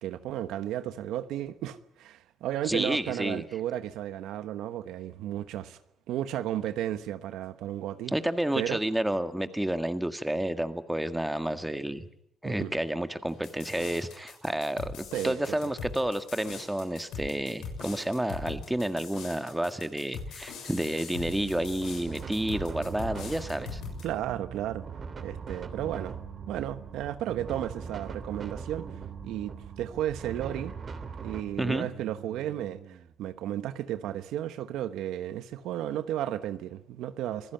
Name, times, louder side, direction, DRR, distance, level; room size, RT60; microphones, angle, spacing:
voice 1, 0.0-5.8 6.1-8.1 8.5-8.8 12.4-12.7 15.1-15.6 24.0-24.8 25.2-26.2 26.5-28.9 29.2-30.7 31.2-37.5, right 12 dB, 90° right, 1.1 m, -33 dB
voice 2, 2.6-3.4 8.1-12.0 12.4-23.8 31.6-31.9, right 1 dB, 5° right, 1.8 m, -30 dB
sound 1, 13.4-24.0, left 4 dB, 90° left, 7.0 m, -41 dB
sound 2, 21.3-33.1, right 9 dB, 60° right, 1.5 m, -47 dB
sound 3, 22.1-31.4, right 5 dB, 45° right, 2.9 m, -41 dB
26.5 x 16.0 x 9.2 m
cardioid pair, 90°, 0 cm